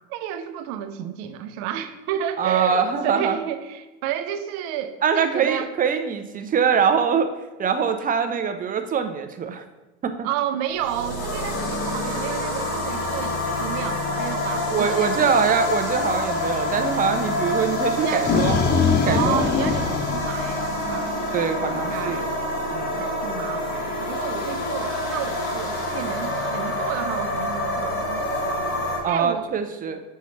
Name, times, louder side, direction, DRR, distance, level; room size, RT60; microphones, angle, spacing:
voice 1, 0.1-5.7 10.2-15.3 18.0-18.5 19.0-21.2 21.7-22.3 23.0-28.3 29.1-29.5, right 10 dB, 75° right, 9 dB, 0.7 m, -31 dB
voice 2, 2.4-3.4 5.0-7.3 7.6-9.6 10.0-10.3 14.7-18.6 19.0-19.5 21.3-22.3 22.7-23.1 29.0-30.0, right 6 dB, 25° right, 7 dB, 0.6 m, -23 dB
sound 1, 10.7-29.0, left 1 dB, 85° left, 1.8 m, -27 dB
sound 2, 17.9-21.2, left 5 dB, 30° left, 0.5 m, -23 dB
6.9 x 5.6 x 3.2 m, 1.1 s
supercardioid pair, 115°, 34 cm